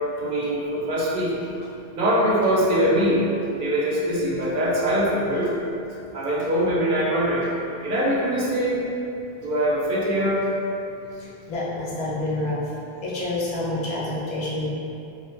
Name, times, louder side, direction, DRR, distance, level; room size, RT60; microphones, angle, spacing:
voice 1, 0.2-1.4 1.9-3.3 3.6-5.6 6.1-7.5 7.8-8.8 9.4-10.4, equal, 60° right, -5 dB, 0.7 m, -22 dB
voice 2, 11.2-12.6 13.0-14.7, left 2 dB, 45° left, -7 dB, 0.6 m, -28 dB
2.6 x 2.2 x 3.2 m, 2.8 s
omnidirectional pair, 1.1 m